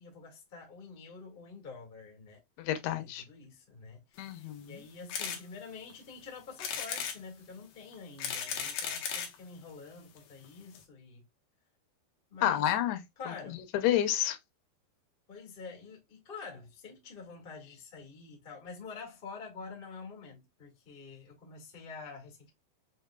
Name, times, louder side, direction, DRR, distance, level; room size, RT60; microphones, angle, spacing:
voice 1, 0.0-2.4 3.0-11.3 12.3-12.7 13.2-13.6 15.3-22.5, left 4 dB, 50° left, 0.6 m, -47 dB
voice 2, 2.6-3.2 4.2-4.8 12.4-13.0 13.5-14.4, left 12 dB, 85° left, 2.9 m, -30 dB
sound 1, 5.1-5.4 5.9-6.0 6.6-7.2 7.9-9.4 10.2-10.3 10.4-10.5 10.7-10.8, left 7 dB, 65° left, 2.3 m, -36 dB
7.0 x 3.0 x 2.2 m
omnidirectional pair, 4.5 m